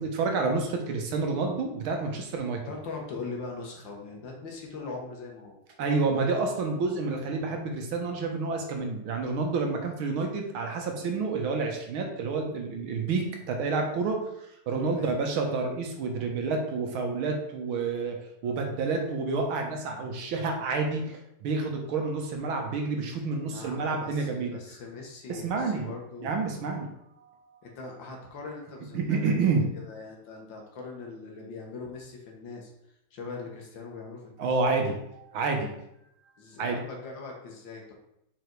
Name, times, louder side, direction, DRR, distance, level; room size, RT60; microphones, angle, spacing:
voice 1, 0.0-2.6 5.8-14.2 14.7-18.2 18.4-24.6 25.3-25.9 26.2-26.9 27.2-27.3 28.9-29.6 34.4-35.7 36.6-36.8, right 4 dB, 80° right, 3 dB, 1.9 m, -29 dB
voice 2, 2.6-5.6 14.9-15.2 23.4-26.6 27.6-32.7 33.1-34.5 36.4-37.9, left 4 dB, 65° left, 0 dB, 2.0 m, -41 dB
5.3 x 5.0 x 4.6 m, 0.80 s
omnidirectional pair, 2.3 m